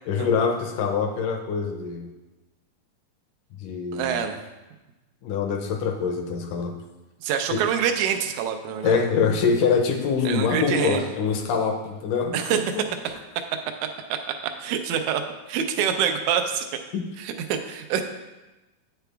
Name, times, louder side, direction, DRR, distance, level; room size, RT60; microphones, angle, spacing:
voice 1, 0.1-2.1 3.6-4.2 5.2-6.7 7.5-7.6 8.8-12.9 16.9-17.0, left 5 dB, 75° left, 4 dB, 2.1 m, -24 dB
voice 2, 3.9-4.4 7.2-9.1 10.2-11.0 12.3-12.6 13.0-13.2 14.1-15.2 15.5-16.7 17.2-18.0, right 8 dB, 80° right, 6 dB, 1.7 m, -26 dB
9.2 x 6.9 x 3.4 m, 1.1 s
omnidirectional pair, 4.2 m